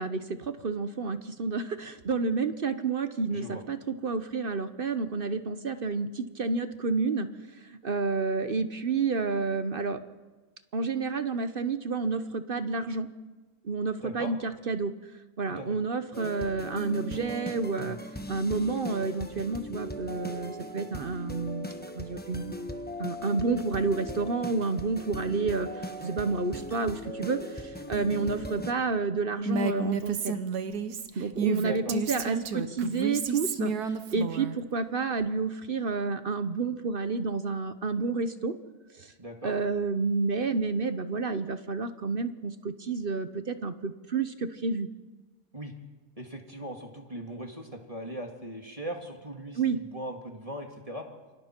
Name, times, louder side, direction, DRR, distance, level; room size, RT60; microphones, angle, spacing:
voice 1, 0.0-7.3 7.6-10.0 10.7-13.1 13.6-14.9 15.4-22.6 23.0-30.4 31.2-38.5 38.9-39.1 39.4-44.9 49.6-49.8, right 4 dB, 45° right, 11 dB, 0.8 m, -30 dB
voice 2, 3.3-3.6 14.0-14.3 15.5-15.8 31.7-31.9 39.2-39.5 45.5-45.7 46.2-51.1, right 1 dB, 25° right, 2 dB, 2.0 m, -39 dB
sound 1, 16.1-28.7, equal, 5° left, 1.0 m, -39 dB
Female speech woman speaking, 29.5-34.6, right 5 dB, 80° right, 1.6 m, -31 dB
28.0 x 24.5 x 4.5 m, 1.2 s
omnidirectional pair, 1.6 m